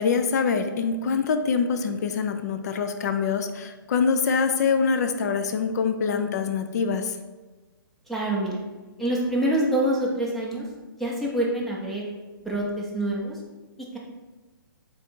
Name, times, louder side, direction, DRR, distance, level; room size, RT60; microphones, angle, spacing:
voice 1, 0.0-7.1, left 5 dB, 50° left, 8 dB, 0.4 m, -24 dB
voice 2, 8.1-8.6 9.0-10.7 11.0-12.0 12.4-13.4, right 1 dB, ahead, -4 dB, 0.6 m, -26 dB
3.7 x 2.5 x 4.3 m, 1.3 s
hypercardioid pair, 140°, 12 cm